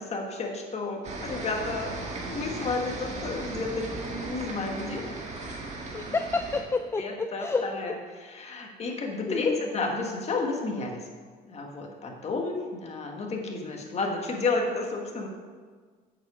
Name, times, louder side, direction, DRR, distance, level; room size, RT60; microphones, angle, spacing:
voice 1, 0.0-5.0 7.0-11.1 11.4-15.3, left 3 dB, 40° left, 1 dB, 1.6 m, -32 dB
sound 1, 1.0-6.6, right 2 dB, 40° right, 1.8 m, -36 dB
voice 2, 5.9-7.6 9.3-9.6, left 3 dB, 15° left, 9 dB, 0.3 m, -29 dB
8.0 x 7.2 x 5.0 m, 1.6 s
cardioid pair, 110°, 17 cm